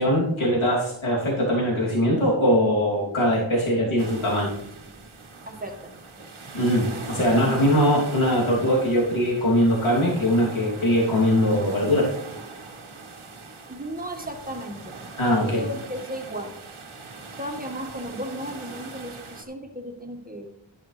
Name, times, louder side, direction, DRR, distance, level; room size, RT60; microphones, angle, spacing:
voice 1, 0.0-4.5 6.5-12.1 15.2-15.6, equal, 80° left, -4 dB, 3.1 m, -21 dB
sound 1, 4.0-19.4, right 3 dB, 90° right, 1.5 m, -40 dB
voice 2, 5.5-6.0 7.3-7.8 13.7-15.0 15.5-16.6 17.4-20.5, equal, 20° right, 3 dB, 1.8 m, -35 dB
12.0 x 11.0 x 3.3 m, 0.76 s
wide cardioid pair, 75°, 48 cm